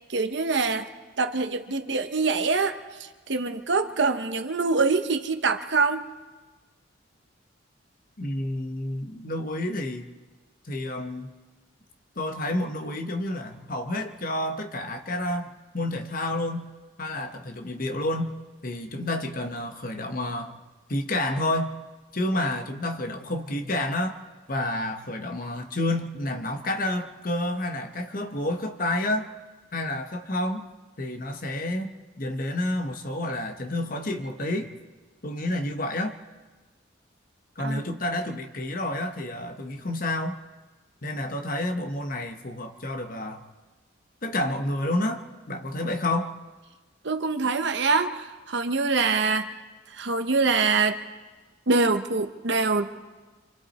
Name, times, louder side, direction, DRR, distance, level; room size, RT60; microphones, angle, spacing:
voice 1, 0.1-0.9 1.2-2.8 3.3-6.0 37.6-37.8 47.0-49.5 50.0-51.0 51.7-52.9, right 4 dB, 60° right, 8 dB, 1.0 m, -24 dB
voice 2, 8.2-10.1 10.6-11.3 12.2-16.7 17.0-18.4 18.6-20.6 20.9-21.8 22.1-24.2 24.5-29.3 29.7-30.7 31.0-31.9 32.2-34.8 35.2-36.2 37.6-40.4 41.0-43.4 44.2-46.4, left 1 dB, 45° left, 6 dB, 1.1 m, -29 dB
26.5 x 26.0 x 4.2 m, 1.3 s
head